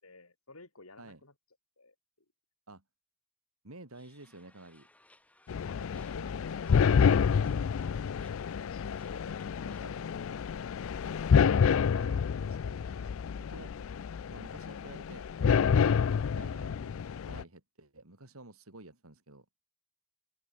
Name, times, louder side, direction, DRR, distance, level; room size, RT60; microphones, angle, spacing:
voice 1, 0.0-1.3 1.8-1.9 5.6-9.3, left 2 dB, 85° left, 7.3 m, -53 dB
voice 2, 3.6-4.9 9.6-10.1 11.9-13.7 14.3-15.9 16.3-16.9 17.2-19.5, right 2 dB, 85° right, 3.7 m, -51 dB
sound 1, 3.9-10.1, left 1 dB, 5° left, 5.3 m, -64 dB
sound 2, 5.5-17.4, left 6 dB, 70° left, 0.4 m, -28 dB
head